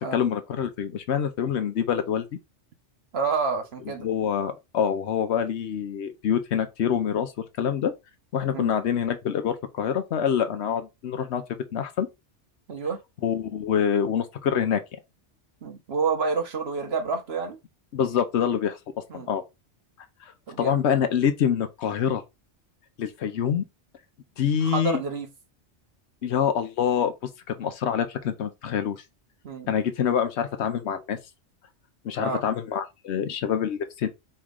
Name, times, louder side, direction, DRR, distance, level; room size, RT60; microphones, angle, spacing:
voice 1, 0.1-2.3 4.0-7.9 8.3-11.4 11.7-12.1 13.2-14.8 17.9-19.4 20.6-22.2 23.0-23.6 24.4-25.0 26.2-27.1 27.5-29.0 29.7-31.2 32.0-34.1, left 8 dB, 70° left, 0.9 m, -26 dB
voice 2, 3.1-4.1 8.5-8.7 12.7-13.0 15.6-17.6 19.1-19.3 20.5-20.8 24.6-25.3 29.4-29.7 32.2-32.4, right 4 dB, 60° right, 1.2 m, -28 dB
4.4 x 3.1 x 3.7 m
omnidirectional pair, 1.2 m